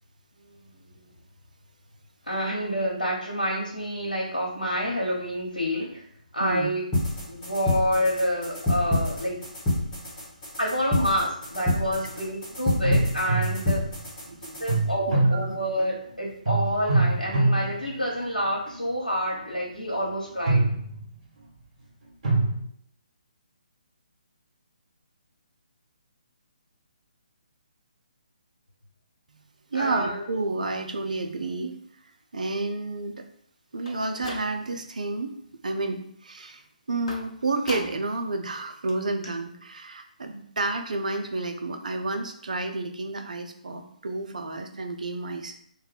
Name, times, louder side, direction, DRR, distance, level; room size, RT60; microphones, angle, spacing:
voice 1, 2.2-6.1 6.3-6.8 7.3-9.4 10.6-13.8 14.6-20.7 29.7-30.3, equal, 85° left, -4 dB, 0.8 m, -28 dB
voice 2, 6.4-6.7 14.3-14.7 15.1-15.6 29.7-31.8 32.3-33.3 33.7-35.3 35.6-36.6 36.9-45.6, right 2 dB, 60° right, 5 dB, 0.4 m, -30 dB
sound 1, 6.9-14.9, left 1 dB, 15° left, 1.2 m, -28 dB
sound 2, 11.9-12.2 12.8-14.0 14.7-16.1 16.5-18.8 19.3-19.6 20.3-21.4 22.2-22.6, right 2 dB, 40° right, 1.5 m, -25 dB
sound 3, 33.7-34.9 35.3-35.8 37.1-38.2 38.5-38.6 38.9-39.0 39.2-39.3, left 2 dB, 45° left, 0.7 m, -40 dB
2.6 x 2.2 x 4.0 m, 0.66 s
figure-of-eight pair, 140°, 5 cm